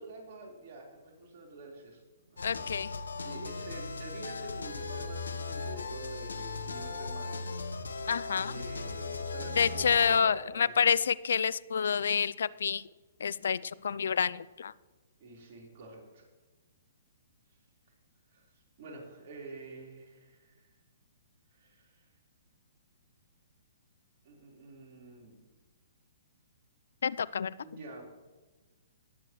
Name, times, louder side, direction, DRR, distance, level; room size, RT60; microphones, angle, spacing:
voice 1, 0.0-2.3 2.7-2.8 3.2-7.6 8.5-10.9 15.2-16.3 18.3-18.4 18.8-20.7 21.5-22.1 24.2-25.4 27.6-28.0, right 2 dB, 50° right, -2 dB, 4.1 m, -47 dB
sound 1, 2.4-10.2, left 3 dB, 90° left, 1.0 m, -38 dB
voice 2, 2.4-2.9 8.1-8.5 9.6-12.8 13.2-14.7 27.0-27.5, left 7 dB, 75° left, 20 dB, 0.4 m, -28 dB
19.5 x 8.5 x 3.1 m, 1.2 s
hypercardioid pair, 135°, 0 cm